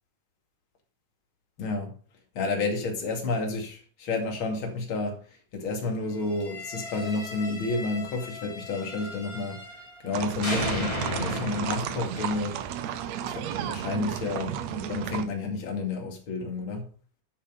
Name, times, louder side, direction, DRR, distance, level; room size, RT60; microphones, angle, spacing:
voice 1, 1.6-2.0 2.3-12.6 13.2-16.9, left 3 dB, 40° left, 2.8 m, -31 dB
sound 1, 6.3-10.1 10.4-13.4, left 1 dB, 10° left, 2.9 m, -36 dB
sound 2, 10.1-15.2, right 10 dB, 85° right, 1.5 m, -33 dB
9.9 x 7.1 x 5.2 m
omnidirectional pair, 4.1 m